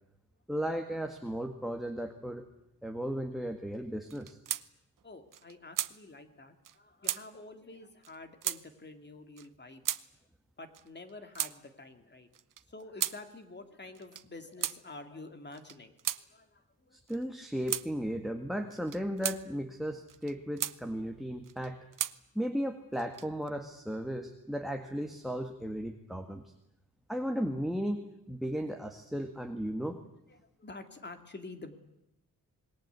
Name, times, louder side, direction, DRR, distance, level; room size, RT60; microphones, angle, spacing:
voice 1, 0.5-2.5 2.8-4.4 16.9-21.8 22.4-26.4 27.1-28.0 28.3-30.0, equal, ahead, 4 dB, 1.7 m, -35 dB
sound 1, 4.1-4.6 5.0-5.1 5.3-5.9 6.6-6.8 7.0-7.2 8.0-8.2 8.4-8.6 9.4-9.5 9.8-10.0 10.7-11.5 12.3-13.2 13.9-14.2 14.6-14.8 15.5-16.2 17.1-17.2 17.7-17.9 18.7-19.4 20.1-20.8 21.4-22.2 22.9-23.5, right 10 dB, 70° right, 0.9 m, -35 dB
voice 2, 5.0-9.8 10.6-12.3 12.7-16.0 16.3-17.0 27.2-27.3 30.3-31.8, left 2 dB, 30° left, 7 dB, 2.6 m, -48 dB
26.5 x 21.0 x 8.3 m, 0.85 s
wide cardioid pair, 135°, 34 cm